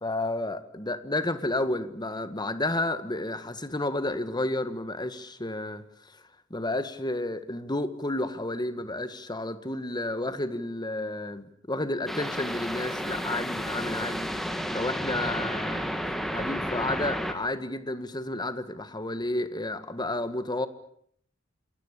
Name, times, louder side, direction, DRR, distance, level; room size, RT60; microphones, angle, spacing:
voice 1, 0.0-6.2 6.5-14.3 14.7-15.9 16.3-20.7, left 2 dB, 20° left, 1.8 m, -31 dB
sound 1, 12.1-17.3, equal, ahead, 2.6 m, -32 dB
27.5 x 21.0 x 8.4 m
head